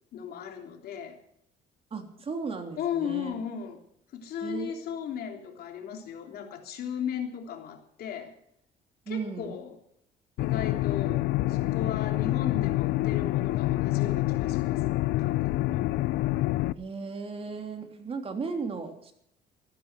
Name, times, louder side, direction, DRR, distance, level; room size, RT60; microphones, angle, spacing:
voice 1, 0.1-1.2 2.8-3.8 4.1-8.3 9.1-9.7 10.4-11.2 11.5-14.8 15.2-15.8, left 8 dB, 65° left, 3 dB, 3.2 m, -36 dB
voice 2, 1.9-3.3 4.4-4.7 9.0-9.6 16.8-19.1, right 5 dB, 35° right, 5 dB, 3.1 m, -35 dB
sound 1, 10.4-16.7, left 17 dB, 85° left, 0.6 m, -27 dB
15.0 x 12.5 x 6.1 m, 0.71 s
cardioid pair, 110°, 17 cm